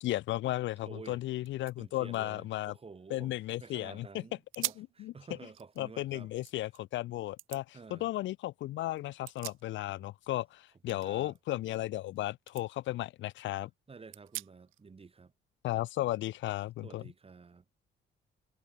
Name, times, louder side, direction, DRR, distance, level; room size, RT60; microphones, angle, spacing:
voice 1, 0.0-2.7 3.1-4.2 4.6-5.1 5.8-13.7 15.6-17.0, left 15 dB, 70° left, 0.4 m, -35 dB
voice 2, 0.9-1.2 1.8-3.3 3.6-6.3 7.7-8.1 10.9-11.4 13.9-15.3 16.8-17.6, right 4 dB, 30° right, 1.9 m, -50 dB
sound 1, 1.0-1.1 1.4-3.6 4.0-4.1 4.5-5.0 5.4-6.8 7.4-7.6 9.0-10.1 10.4-12.2 12.5-12.7 13.1-13.2 14.1-14.8, right 17 dB, 90° right, 1.3 m, -44 dB
cardioid pair, 90°, 20 cm